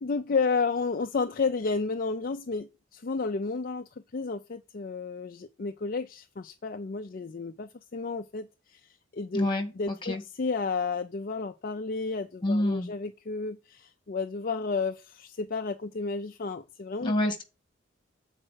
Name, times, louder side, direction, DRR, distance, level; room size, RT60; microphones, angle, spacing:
voice 1, 0.0-9.5 9.7-17.1, left 4 dB, 50° left, 0.5 m, -32 dB
voice 2, 9.3-10.2 12.4-12.9 17.0-17.4, left 1 dB, 25° left, 1.7 m, -27 dB
7.6 x 4.4 x 6.2 m
head